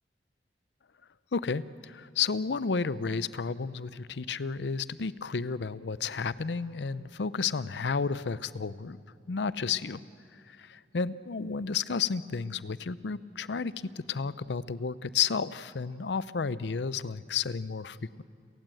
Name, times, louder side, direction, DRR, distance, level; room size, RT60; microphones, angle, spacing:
voice 1, 1.3-9.0 9.3-10.0 10.3-18.2, left 5 dB, 80° left, 16 dB, 0.6 m, -32 dB
30.0 x 18.0 x 7.7 m, 2.4 s
head